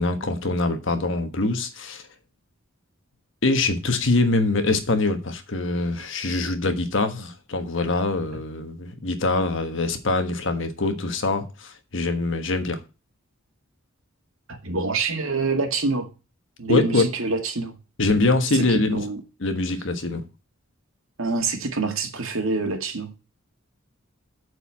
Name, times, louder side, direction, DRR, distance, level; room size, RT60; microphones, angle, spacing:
voice 1, 0.0-2.0 3.4-12.8 16.7-17.1 18.0-19.0 19.4-20.2, left 2 dB, 60° left, 1.3 m, -24 dB
voice 2, 14.5-16.1 16.6-17.8 18.5-19.2 21.2-23.1, right 3 dB, 75° right, 2.0 m, -26 dB
8.1 x 4.7 x 7.3 m
head